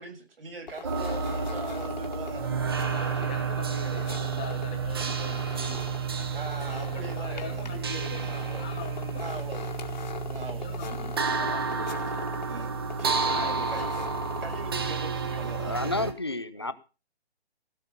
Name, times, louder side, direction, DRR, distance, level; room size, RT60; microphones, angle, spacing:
voice 1, 0.0-3.9 6.3-8.7 9.1-9.7 10.2-11.2 12.4-13.9 14.4-16.1 16.6-16.7, right 3 dB, 60° right, 2 dB, 6.9 m, -42 dB
sound 1, 0.7-15.1, left 6 dB, 45° left, 2.1 m, -42 dB
sound 2, 0.8-16.1, right 5 dB, 20° right, 1.0 m, -31 dB
voice 2, 2.9-5.8 6.1-6.3 6.6-9.4 10.6-12.2 13.2-13.9, left 6 dB, 5° left, 4 dB, 0.9 m, -42 dB
voice 3, 15.6-16.7, left 2 dB, 25° left, 14 dB, 0.5 m, -30 dB
16.5 x 6.5 x 7.1 m, 0.33 s
hypercardioid pair, 175°, 32 cm